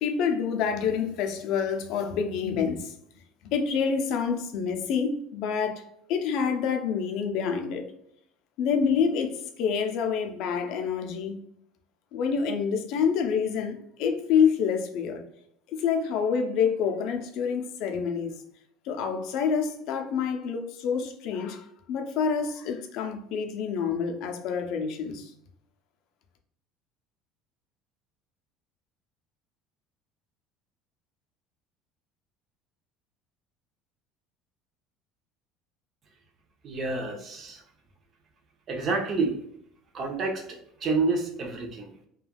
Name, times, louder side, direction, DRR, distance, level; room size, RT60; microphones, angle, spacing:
voice 1, 0.0-2.9 3.5-7.9 8.6-11.4 12.1-15.2 15.7-18.4 18.8-25.3, left 6 dB, 65° left, 0.5 m, -27 dB
voice 2, 36.6-37.6 38.7-39.4 39.9-42.1, right 3 dB, 35° right, 0.7 m, -29 dB
3.3 x 2.3 x 2.3 m
cardioid pair, 135°, 0 cm